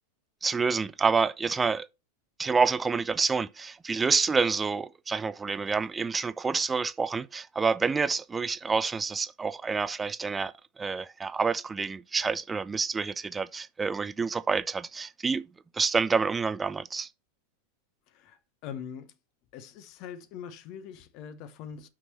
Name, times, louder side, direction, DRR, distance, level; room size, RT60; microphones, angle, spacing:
voice 1, 0.4-1.9 2.4-15.5 15.7-17.1, right 5 dB, 15° right, 0.5 m, -28 dB
voice 2, 18.1-19.1 19.5-21.9, left 8 dB, 40° left, 0.9 m, -42 dB
6.2 x 6.1 x 4.2 m
figure-of-eight pair, 90°, 0 cm